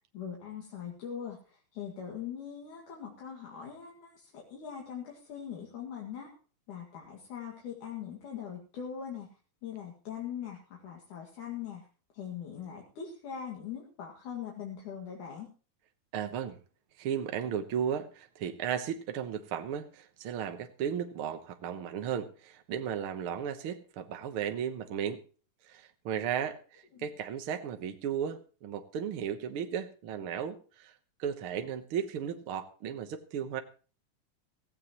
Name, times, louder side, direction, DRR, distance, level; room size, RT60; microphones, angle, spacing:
voice 1, 0.1-6.3 6.7-9.3 9.6-11.8 12.1-15.5 26.9-27.1, left 8 dB, 65° left, -1 dB, 3.5 m, -41 dB
voice 2, 16.1-16.6 17.0-25.2 25.6-30.9 31.2-33.6, right 8 dB, 65° right, 7 dB, 1.3 m, -35 dB
16.5 x 16.0 x 3.0 m, 0.37 s
omnidirectional pair, 3.9 m